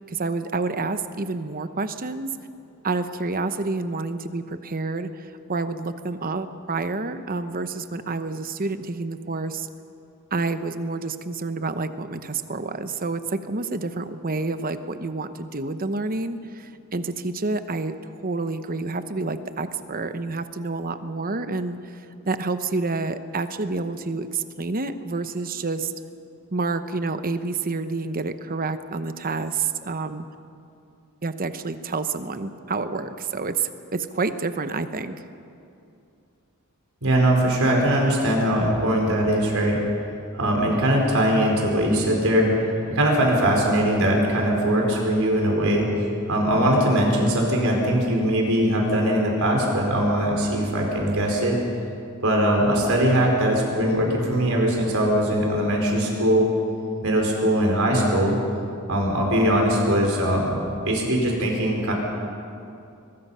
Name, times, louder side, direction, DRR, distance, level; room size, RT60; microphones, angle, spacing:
voice 1, 0.0-2.3 2.8-9.7 10.3-21.8 22.3-25.9 26.5-30.2 31.2-35.1, right 3 dB, 40° right, 10 dB, 0.9 m, -28 dB
voice 2, 37.0-39.8 40.3-42.5 42.9-45.9 46.3-51.6 52.2-56.5 57.0-58.4 58.9-61.9, right 1 dB, 65° right, 0 dB, 4.8 m, -21 dB
22.5 x 21.0 x 5.7 m, 2.5 s
head